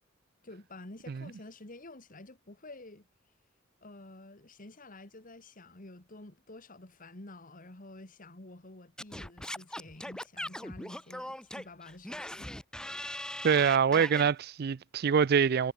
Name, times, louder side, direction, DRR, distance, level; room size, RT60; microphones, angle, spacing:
voice 1, 0.4-3.1 3.8-12.5, left 2 dB, 45° left, 2.3 m, -50 dB
Singing / Scratching (performance technique), 9.0-14.3, left 1 dB, 5° left, 1.2 m, -40 dB
voice 2, 13.4-15.7, right 7 dB, 55° right, 0.4 m, -25 dB
head